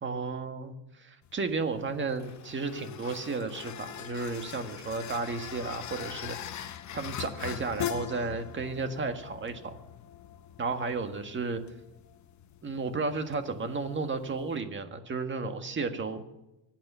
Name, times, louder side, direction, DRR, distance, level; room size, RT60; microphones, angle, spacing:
voice 1, 0.0-9.8 10.6-11.6 12.6-16.2, right 4 dB, 25° right, 7 dB, 1.7 m, -33 dB
sound 1, 1.2-14.6, left 10 dB, 40° left, 1.0 m, -42 dB
24.0 x 9.0 x 5.6 m, 0.92 s
cardioid pair, 125°, 45 cm